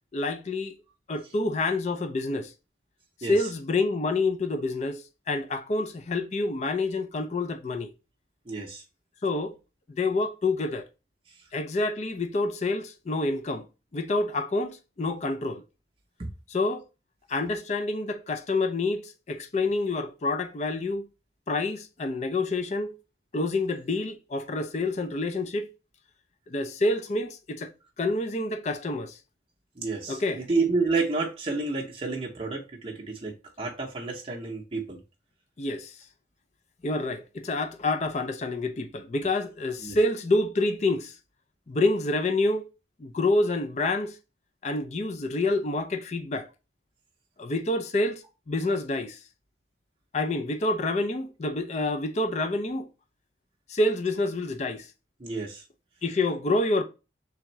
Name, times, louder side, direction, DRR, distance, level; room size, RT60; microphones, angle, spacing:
voice 1, 0.1-0.7 1.1-2.5 3.3-7.9 9.2-9.5 9.9-10.8 11.5-13.7 13.9-15.6 16.5-16.8 17.3-21.1 21.5-22.9 23.3-25.7 26.5-27.7 28.0-29.2 30.1-30.4 35.6-35.9 36.8-41.1 41.7-42.7 43.0-44.2 44.6-46.5 47.4-49.2 50.1-52.9 53.7-54.9 56.0-56.8, left 2 dB, 40° left, 0.4 m, -27 dB
voice 2, 8.5-8.8 16.2-16.3 29.8-35.0 39.8-40.0 55.2-55.6, right 3 dB, 30° right, 0.7 m, -30 dB
3.6 x 3.4 x 3.0 m
head